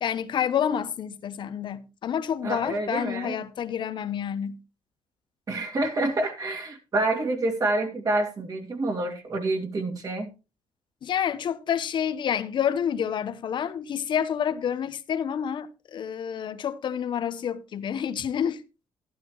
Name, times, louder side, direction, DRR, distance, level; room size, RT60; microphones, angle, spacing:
voice 1, 0.0-4.6 11.0-18.6, left 8 dB, 55° left, 1.0 m, -28 dB
voice 2, 2.4-3.4 5.5-10.3, right 2 dB, 40° right, 2.7 m, -27 dB
12.0 x 11.5 x 3.1 m
cardioid pair, 105°, 9 cm